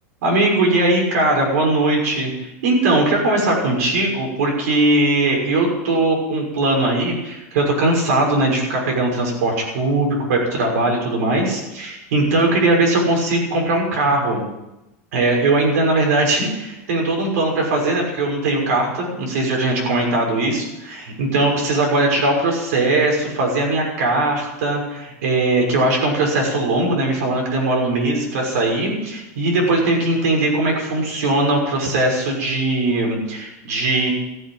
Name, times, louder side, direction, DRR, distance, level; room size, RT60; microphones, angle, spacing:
voice 1, 0.2-2.3 2.6-14.4 15.1-34.1, right 2 dB, 70° right, 0 dB, 6.2 m, -20 dB
15.0 x 8.8 x 9.1 m, 0.95 s
supercardioid pair, 175°, 9 cm